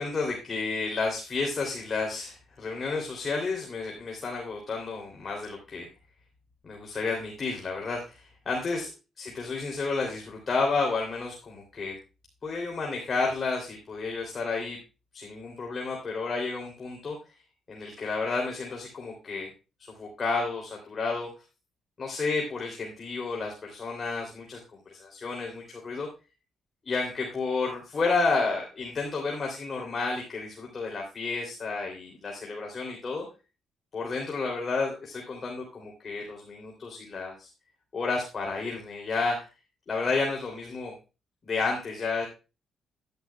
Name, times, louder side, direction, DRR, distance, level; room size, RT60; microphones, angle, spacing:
voice 1, 0.0-5.9 6.6-8.9 9.2-11.9 12.4-14.8 15.1-17.2 17.7-19.5 20.0-21.3 22.0-24.6 24.9-26.1 26.8-33.2 33.9-37.5 37.9-39.5 39.9-40.9 41.4-42.3, left 4 dB, 40° left, 0 dB, 3.1 m, -31 dB
11.0 x 10.5 x 2.3 m, 0.29 s
cardioid pair, 90°, 0 cm